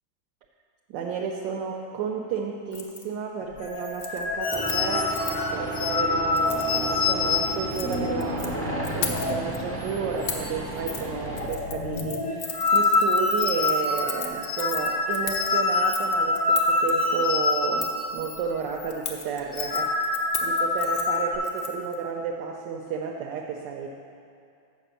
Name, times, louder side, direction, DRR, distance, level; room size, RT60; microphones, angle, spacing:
voice 1, 0.9-5.2 5.5-23.9, right 6 dB, 75° right, 1 dB, 1.2 m, -32 dB
Keys jangling, 2.7-3.0 3.4-3.7 3.9-5.5 6.3-6.7 7.5-8.5 8.8-9.6 10.3-10.5 10.9-11.0 11.3-16.9 17.8-18.1 18.9-21.9 22.2-22.3, left 6 dB, 85° left, 0.6 m, -36 dB
sound 1, 3.6-9.5 9.8-10.0 10.2-10.8 11.1-18.4 18.7-18.9 19.4-21.4, left 3 dB, 60° left, 0.9 m, -26 dB
sound 2, 4.5-11.5, right 2 dB, 45° right, 0.6 m, -34 dB
7.3 x 5.0 x 6.7 m, 2.5 s
omnidirectional pair, 2.1 m